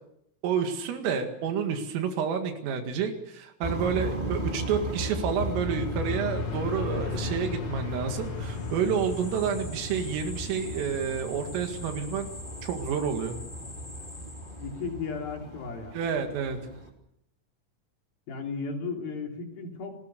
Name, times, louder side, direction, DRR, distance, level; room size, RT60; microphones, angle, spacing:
voice 1, 0.4-12.3 12.6-13.4 15.9-16.6, right 7 dB, 75° right, 6 dB, 4.6 m, -29 dB
sound 1, 3.6-16.9, right 1 dB, 15° right, 1.8 m, -37 dB
sound 2, 5.3-14.2, left 6 dB, 70° left, 1.3 m, -38 dB
sound 3, 8.4-14.9, left 2 dB, 20° left, 3.2 m, -46 dB
voice 2, 14.6-16.0 18.3-20.0, left 4 dB, 50° left, 3 dB, 4.8 m, -35 dB
29.0 x 20.0 x 6.9 m, 0.78 s
omnidirectional pair, 5.9 m